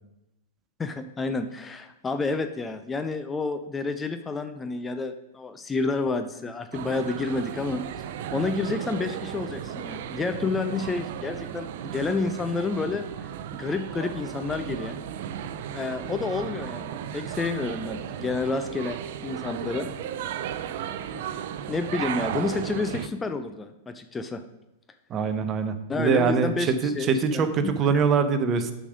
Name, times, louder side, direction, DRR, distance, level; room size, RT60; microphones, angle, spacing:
voice 1, 0.8-15.0 15.7-19.0 19.2-19.9 21.1-21.2 21.7-24.4 25.9-27.8, left 3 dB, 15° left, 8 dB, 0.5 m, -30 dB
sound 1, 6.7-23.1, right 9 dB, 60° right, 0.5 m, -35 dB
voice 2, 25.1-28.7, right 5 dB, 30° right, 9 dB, 0.8 m, -23 dB
8.5 x 5.1 x 5.1 m, 0.94 s
hypercardioid pair, 105°, 0 cm